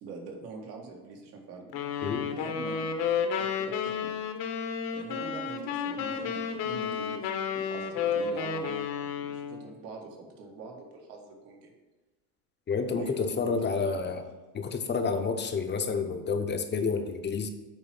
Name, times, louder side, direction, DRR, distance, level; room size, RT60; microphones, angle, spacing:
voice 1, 0.0-4.1 4.9-11.7 12.9-14.0, right 4 dB, 80° right, 1 dB, 1.7 m, -44 dB
sound 1, 1.7-9.7, left 6 dB, 55° left, 1.0 m, -32 dB
voice 2, 12.7-14.2 14.5-17.5, left 5 dB, 20° left, 7 dB, 0.7 m, -29 dB
9.0 x 3.1 x 5.9 m, 1.2 s
supercardioid pair, 100°, 47 cm